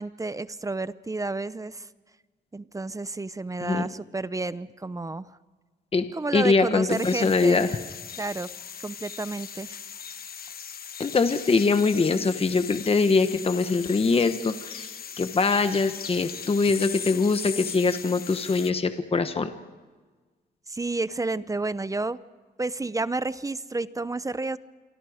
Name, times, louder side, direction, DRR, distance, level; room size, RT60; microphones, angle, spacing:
voice 1, 0.0-1.9 2.5-5.3 6.1-7.7 8.2-8.5 8.8-9.8 20.7-22.2 22.6-24.6, right 2 dB, 20° right, 15 dB, 0.7 m, -31 dB
voice 2, 6.3-7.7 11.0-14.9 15.2-19.5, left 4 dB, 35° left, 9 dB, 1.2 m, -23 dB
sound 1, 6.9-18.7, left 7 dB, 60° left, 1.2 m, -39 dB
27.5 x 23.5 x 5.1 m, 1.4 s
cardioid pair, 95°, 18 cm